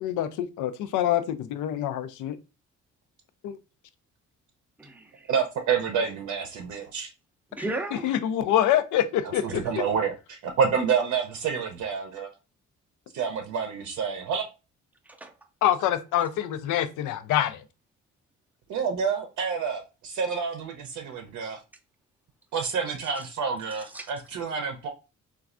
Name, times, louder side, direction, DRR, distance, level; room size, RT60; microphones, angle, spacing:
voice 1, 0.0-2.4 3.4-3.6 8.0-9.4 15.6-17.6, left 11 dB, 85° left, 0.5 m, -25 dB
voice 2, 4.8-5.3 7.5-8.2 9.6-9.7 15.0-15.4 16.2-16.3 23.2-23.3 23.8-24.1, right 2 dB, 5° right, 0.4 m, -36 dB
voice 3, 5.3-7.1 9.4-12.3 13.1-14.4 18.7-21.6 22.5-24.9, right 6 dB, 70° right, 0.6 m, -28 dB
3.1 x 2.3 x 2.4 m
cardioid pair, 90°, 30 cm